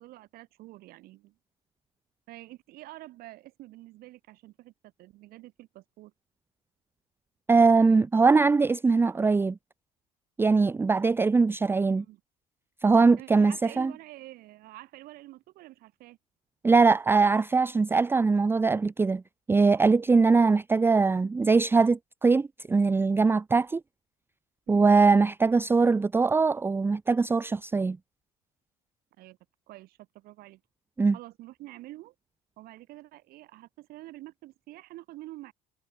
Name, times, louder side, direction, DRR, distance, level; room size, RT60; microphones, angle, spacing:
voice 1, 0.0-1.4 2.3-6.1 11.9-12.2 13.2-16.2 24.7-25.0 29.2-29.4 29.7-30.6 31.1-32.1 32.6-35.5, right 17 dB, 60° right, 6.0 m, -47 dB
voice 2, 7.5-9.6 10.4-12.0 12.8-13.9 16.6-19.2 19.5-23.8 24.7-28.0 31.0-31.2, right 4 dB, 15° right, 0.6 m, -22 dB
supercardioid pair, 115°, 17 cm